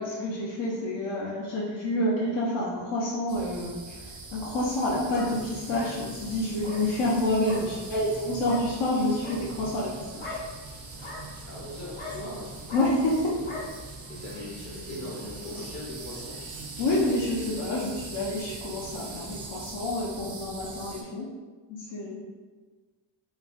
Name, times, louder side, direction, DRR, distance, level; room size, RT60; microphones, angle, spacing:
voice 1, 0.0-4.0 4.3-10.4 12.7-13.4 16.8-21.3 21.7-22.2, left 1 dB, 70° left, -5 dB, 0.6 m, -28 dB
sound 1, 3.3-21.0, right 4 dB, 45° right, 0.4 m, -43 dB
sound 2, 4.7-5.3 5.7-5.9 6.6-6.8 7.4-7.6 8.4-8.6 9.1-9.4 10.2-10.4 10.9-11.2 12.0-12.1 12.7-12.8 13.4-13.6, left 3 dB, 85° left, 1.3 m, -39 dB
sound 3, 5.3-19.5, right 1 dB, 5° left, 0.6 m, -46 dB
voice 2, 11.5-12.5 14.1-16.4, left 1 dB, 35° left, -5 dB, 0.8 m, -40 dB
3.2 x 2.3 x 2.4 m, 1.4 s
wide cardioid pair, 135°, 46 cm